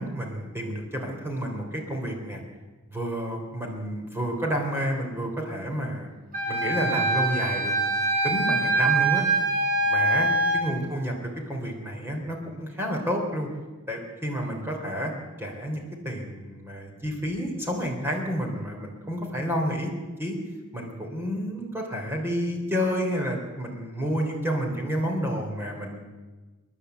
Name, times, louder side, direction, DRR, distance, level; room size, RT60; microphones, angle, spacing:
voice 1, 0.0-2.4 2.9-6.1 6.4-7.8 8.2-9.2 9.8-10.3 10.5-13.5 13.9-15.1 15.4-19.9 20.2-20.4 20.7-26.0, equal, 10° right, 1 dB, 3.5 m, -30 dB
Wind instrument woodwind instrument, 6.3-10.6, right 2 dB, 45° right, 6.9 m, -24 dB
29.5 x 11.0 x 8.1 m, 1.3 s
head